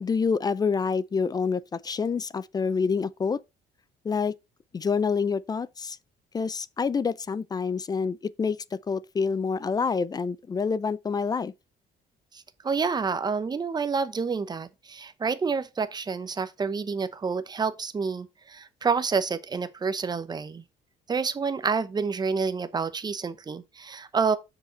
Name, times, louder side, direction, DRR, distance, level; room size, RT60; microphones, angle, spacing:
voice 1, 0.0-3.4 4.0-4.3 4.7-6.0 6.3-11.5, left 5 dB, 25° left, 0.4 m, -27 dB
voice 2, 12.3-20.6 21.1-24.4, right 5 dB, 25° right, 0.8 m, -28 dB
6.5 x 5.0 x 4.4 m
cardioid pair, 110°, 17 cm